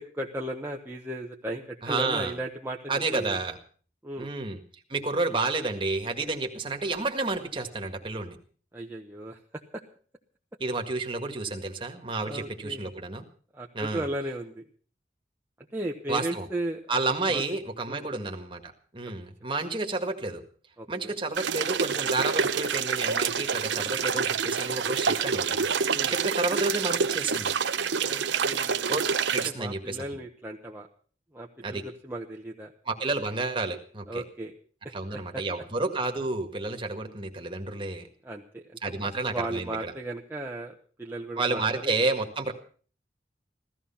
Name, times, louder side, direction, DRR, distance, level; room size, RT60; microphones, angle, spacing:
voice 1, 0.0-3.4 4.0-4.3 8.7-9.4 9.7-9.8 12.2-12.9 13.5-14.6 15.7-16.8 17.3-17.4 17.9-18.1 20.8-21.2 25.9-26.2 28.0-28.9 29.4-30.9 31.3-32.7 34.1-34.5 34.8-35.4 38.2-38.9 39.2-42.0, right 1 dB, 10° right, -1 dB, 1.0 m, -36 dB
voice 2, 1.8-2.3 2.9-3.6 4.2-4.6 4.9-8.4 10.6-13.3 13.7-14.0 16.1-16.5 16.9-20.4 20.9-25.7 26.1-27.5 28.9-29.0 29.3-30.0 31.6-31.8 32.9-34.2 34.9-38.1 38.8-39.9 41.4-42.5, right 3 dB, 30° right, 4 dB, 1.8 m, -30 dB
sound 1, 21.3-29.5, right 6 dB, 75° right, 0.8 m, -27 dB
16.0 x 14.0 x 5.7 m, 0.43 s
head